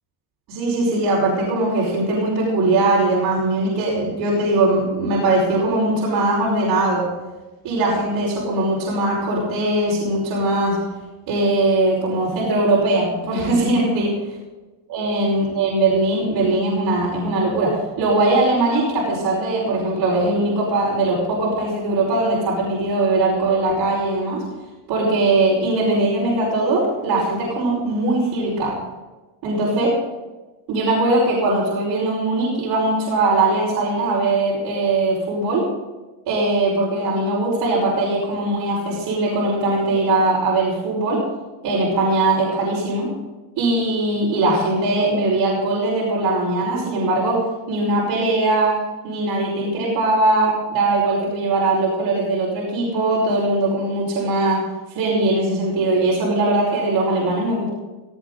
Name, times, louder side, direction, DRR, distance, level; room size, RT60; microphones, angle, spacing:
voice 1, 0.5-7.1 7.6-10.8 11.3-14.1 14.9-24.4 24.9-28.8 29.4-30.0 30.7-35.6 36.3-41.2 41.6-43.1 43.6-48.8 49.0-54.6 54.9-57.7, right 2 dB, 60° right, -6 dB, 5.2 m, -20 dB
17.0 x 15.5 x 4.0 m, 1.2 s
cardioid pair, 170°, 44 cm